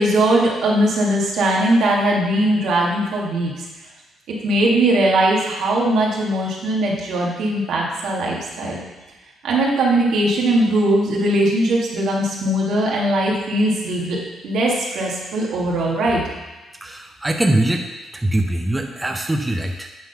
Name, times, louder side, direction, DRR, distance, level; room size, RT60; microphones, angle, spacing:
voice 1, 0.0-3.7 4.4-8.8 9.4-16.3, right 1 dB, 75° right, -2 dB, 1.8 m, -20 dB
voice 2, 16.8-17.9 18.1-19.9, right 1 dB, 15° right, 3 dB, 0.6 m, -22 dB
8.7 x 3.8 x 5.7 m, 1.1 s
cardioid pair, 90°, 0 cm